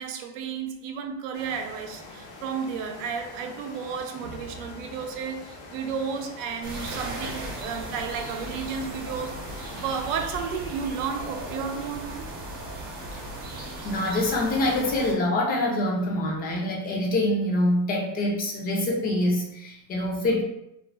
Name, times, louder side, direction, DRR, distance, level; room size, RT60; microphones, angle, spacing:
voice 1, 0.0-9.4 9.7-12.2, right 6 dB, 85° right, 0.6 m, -32 dB
sound 1, 1.3-10.2, left 2 dB, 70° left, 0.8 m, -44 dB
sound 2, 6.6-15.1, right 1 dB, 25° right, 0.6 m, -37 dB
voice 2, 13.8-20.4, left 1 dB, 25° left, 0.4 m, -25 dB
2.4 x 2.1 x 3.2 m
cardioid pair, 155°, 37 cm